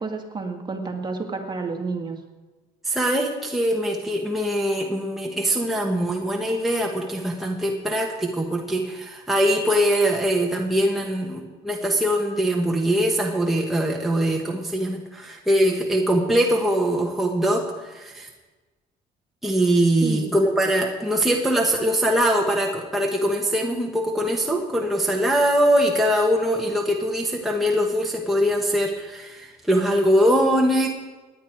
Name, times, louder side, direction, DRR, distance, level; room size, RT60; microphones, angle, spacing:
voice 1, 0.0-2.2 20.0-20.3, right 4 dB, 25° right, 3 dB, 2.0 m, -30 dB
voice 2, 2.8-18.3 19.4-30.9, equal, ahead, -1 dB, 1.5 m, -22 dB
18.0 x 10.5 x 4.7 m, 1.3 s
cardioid pair, 110°, 17 cm